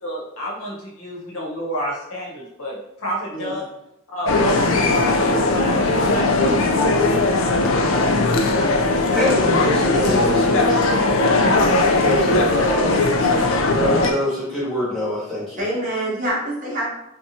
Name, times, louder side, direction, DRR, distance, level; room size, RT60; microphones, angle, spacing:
voice 1, 0.0-3.6 4.1-6.9, equal, 80° left, -3 dB, 0.9 m, -30 dB
sound 1, 4.3-14.1, left 2 dB, 65° left, 0.3 m, -18 dB
voice 2, 9.1-11.1 11.7-13.0 13.8-15.6, left 1 dB, ahead, -9 dB, 1.0 m, -25 dB
voice 3, 15.6-16.9, right 1 dB, 35° right, -5 dB, 0.8 m, -26 dB
2.6 x 2.2 x 2.7 m, 0.84 s
head